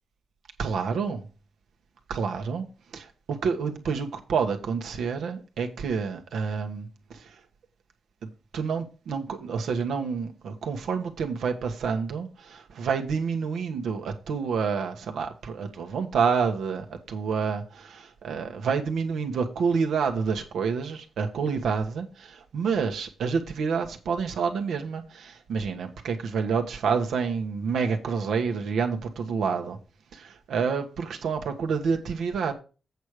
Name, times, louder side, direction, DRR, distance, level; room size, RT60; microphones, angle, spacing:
voice 1, 0.6-1.2 2.1-2.7 2.9-7.4 8.2-29.8 30.1-32.5, right 5 dB, 85° right, 1.3 m, -28 dB
8.1 x 6.3 x 4.9 m
wide cardioid pair, 165°, 0 cm